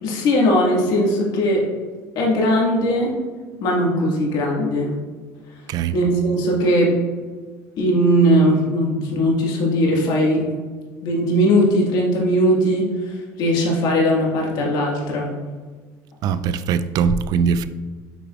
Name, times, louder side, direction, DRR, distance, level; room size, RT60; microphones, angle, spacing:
voice 1, 0.0-1.6 2.1-3.1 3.6-4.9 5.9-6.9 7.8-10.5 11.0-15.3, equal, 65° left, -2 dB, 1.7 m, -19 dB
voice 2, 16.2-17.7, right 6 dB, 55° right, 13 dB, 0.4 m, -21 dB
8.1 x 5.0 x 2.4 m, 1.5 s
supercardioid pair, 110°, 8 cm